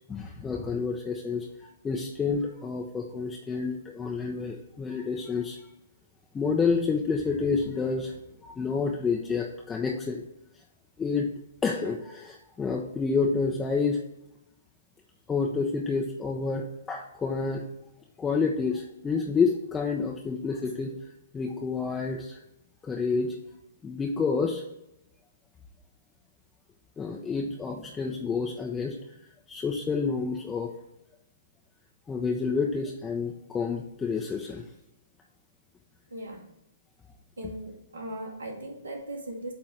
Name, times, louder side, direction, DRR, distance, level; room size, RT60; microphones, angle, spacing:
voice 1, 0.0-5.6 6.3-8.2 8.4-10.2 11.0-11.3 11.6-14.0 15.3-17.6 18.2-21.0 21.3-22.4 22.8-23.4 23.8-24.6 27.0-29.0 29.5-30.7 32.1-34.6, left 4 dB, 15° left, 0 dB, 0.7 m, -29 dB
voice 2, 36.1-36.5 37.4-39.5, right 1 dB, 75° right, 0 dB, 1.8 m, -38 dB
8.5 x 2.9 x 5.1 m, 0.83 s
figure-of-eight pair, 120°, 0 cm